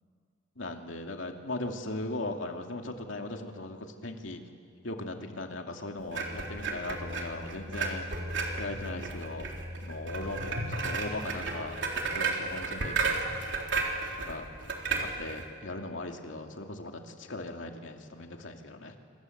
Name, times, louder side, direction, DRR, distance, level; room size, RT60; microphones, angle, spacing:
voice 1, 0.6-4.4 4.8-8.1 8.6-9.5 9.8-11.8 12.1-13.2 14.2-14.7 15.0-19.0, left 2 dB, 75° left, 3 dB, 2.6 m, -38 dB
sound 1, 6.1-15.5, right 3 dB, 65° right, 3.7 m, -33 dB
26.5 x 26.0 x 8.0 m, 2.2 s
head